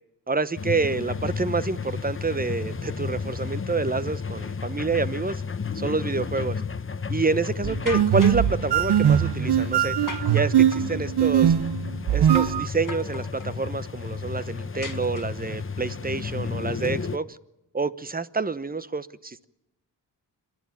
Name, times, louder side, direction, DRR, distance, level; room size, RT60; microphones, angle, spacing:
voice 1, 0.3-5.4 5.7-6.6 7.1-10.0 10.3-11.5 12.1-17.4 17.7-19.5, right 3 dB, 20° right, 1.0 m, -28 dB
sound 1, 0.6-17.2, left 5 dB, 30° left, 0.9 m, -32 dB
sound 2, 7.6-12.7, right 10 dB, 65° right, 0.8 m, -21 dB
sound 3, 7.9-8.5 10.1-11.0 12.3-12.6 12.9-13.6 14.8-15.6, left 4 dB, 45° left, 2.0 m, -37 dB
27.5 x 11.5 x 9.2 m
cardioid pair, 70°, 43 cm